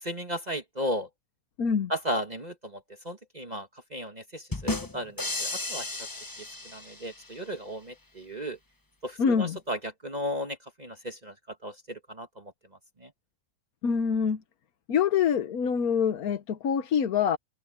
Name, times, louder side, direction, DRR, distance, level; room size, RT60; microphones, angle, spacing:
voice 1, 0.0-1.1 1.9-5.9 6.6-8.6 9.0-11.3 11.6-12.5 13.0-13.1, equal, 30° right, 1.6 m, -35 dB
voice 2, 1.6-1.9 9.2-9.6 13.8-14.4 14.9-17.4, left 7 dB, 70° left, 1.5 m, -25 dB
sound 1, 4.5-7.3, left 2 dB, 15° left, 1.0 m, -34 dB
omnidirectional pair, 1.6 m